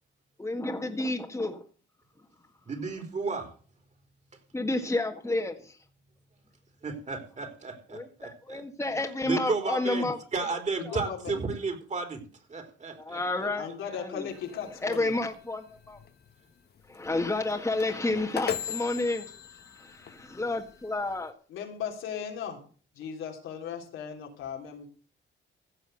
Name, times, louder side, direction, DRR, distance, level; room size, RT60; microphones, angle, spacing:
voice 1, 0.4-1.6 4.5-5.8 7.9-10.2 10.9-11.0 13.0-14.3 14.8-16.0 16.9-21.3, left 2 dB, 15° left, 2 dB, 1.8 m, -31 dB
voice 2, 2.7-3.5 6.8-8.6 9.2-12.2 12.5-13.2, right 4 dB, 35° right, 5 dB, 4.2 m, -33 dB
voice 3, 10.9-11.4 13.6-15.1 21.5-22.6 23.0-24.9, left 8 dB, 85° left, 2 dB, 3.3 m, -37 dB
sound 1, 14.3-21.3, left 8 dB, 55° left, 1.5 m, -40 dB
15.5 x 6.3 x 8.0 m, 0.40 s
cardioid pair, 90°, 20 cm